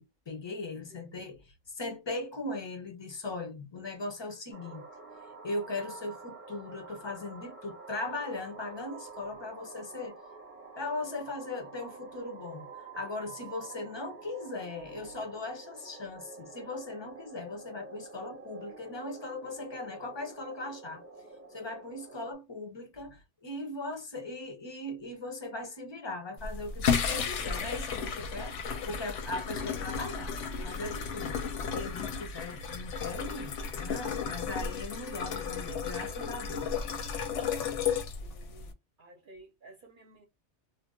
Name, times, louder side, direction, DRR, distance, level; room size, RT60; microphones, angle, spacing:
voice 1, 0.0-4.9 5.4-10.2 10.8-21.0 21.5-28.6 28.9-30.3 30.6-31.4 31.7-36.7, left 2 dB, 35° left, 0.4 m, -39 dB
sound 1, 4.5-22.3, right 4 dB, 15° right, 0.7 m, -48 dB
sound 2, 26.4-38.7, left 6 dB, 85° left, 0.9 m, -33 dB
voice 2, 38.2-38.7 39.0-40.2, right 2 dB, 55° right, 0.7 m, -54 dB
2.3 x 2.0 x 3.5 m
omnidirectional pair, 1.2 m